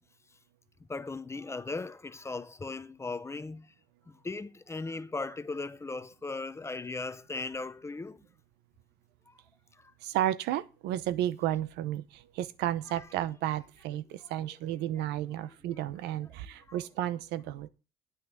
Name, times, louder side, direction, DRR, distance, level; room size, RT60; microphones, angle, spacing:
voice 1, 0.9-3.7 4.1-8.2 9.3-9.4 9.8-9.9 12.9-13.1 14.2-14.3 15.7-16.1 16.7-16.8, left 3 dB, 15° left, 0.6 m, -38 dB
voice 2, 10.0-12.0 12.4-17.7, right 12 dB, 90° right, 0.8 m, -32 dB
9.5 x 6.0 x 8.1 m
cardioid pair, 110°, 17 cm